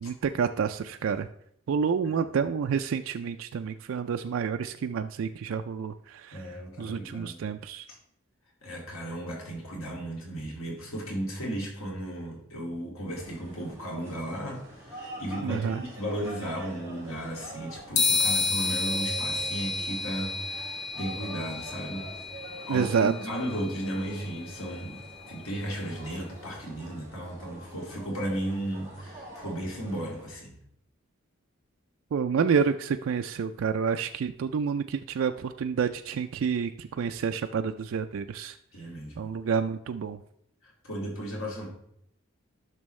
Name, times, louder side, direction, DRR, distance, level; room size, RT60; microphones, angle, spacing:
voice 1, 0.0-1.3 1.7-6.4 6.8-7.9 15.4-15.8 22.7-23.1 32.1-38.5 39.2-40.2, right 6 dB, 75° right, 7 dB, 0.4 m, -29 dB
voice 2, 6.3-7.4 7.9-8.0 8.6-22.1 22.7-30.5 38.7-39.3 40.6-41.7, right 1 dB, 90° left, -2 dB, 2.3 m, -35 dB
sound 1, 13.1-30.3, right 2 dB, 15° right, 2.5 m, -45 dB
sound 2, 18.0-25.6, left 4 dB, 60° left, 0.9 m, -31 dB
11.0 x 6.1 x 3.2 m, 0.72 s
head